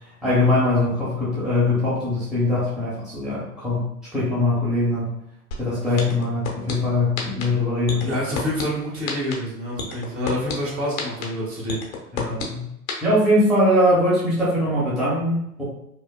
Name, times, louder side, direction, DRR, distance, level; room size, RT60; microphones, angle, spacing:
voice 1, 0.2-3.8 4.1-5.1 5.6-8.1 12.1-12.7 13.0-15.6, left 1 dB, ahead, -10 dB, 0.9 m, -21 dB
sound 1, 5.5-5.6 6.0-6.7 7.2-7.4 7.9-8.6 9.1-9.3 9.8-10.5 11.0-11.2 11.7-12.4 12.9-13.0, left 7 dB, 60° left, 1.1 m, -28 dB
voice 2, 8.0-11.8, equal, 30° right, -4 dB, 1.4 m, -27 dB
5.2 x 2.2 x 2.2 m, 0.78 s
figure-of-eight pair, 110°, 46 cm